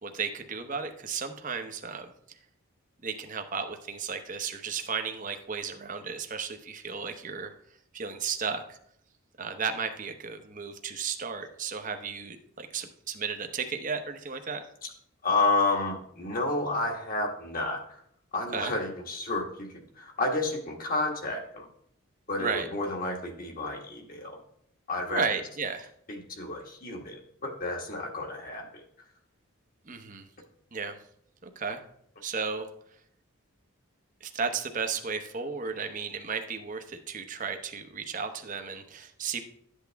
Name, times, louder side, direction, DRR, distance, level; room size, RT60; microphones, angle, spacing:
voice 1, 0.0-2.1 3.0-7.5 7.9-8.8 9.4-14.6 18.5-18.7 22.4-22.7 25.1-25.9 29.9-30.3 30.7-31.0 31.4-31.8 32.2-32.7 34.2-39.4, right 5 dB, 35° right, 6 dB, 0.9 m, -34 dB
voice 2, 15.2-18.0 18.3-21.7 22.3-24.4 24.9-25.2 26.1-28.8, left 2 dB, 40° left, 1 dB, 1.6 m, -31 dB
12.0 x 8.2 x 3.5 m, 0.69 s
head